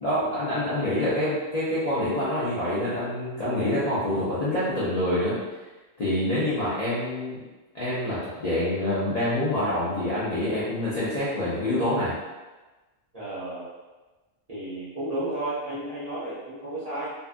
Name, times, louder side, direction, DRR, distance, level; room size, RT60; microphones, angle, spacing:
voice 1, 0.0-5.4 6.0-7.4 7.7-12.1, left 1 dB, 50° left, -11 dB, 0.5 m, -26 dB
voice 2, 13.1-13.7 14.5-17.1, right 1 dB, 45° right, -11 dB, 0.5 m, -32 dB
2.6 x 2.3 x 2.4 m, 1.2 s
omnidirectional pair, 1.4 m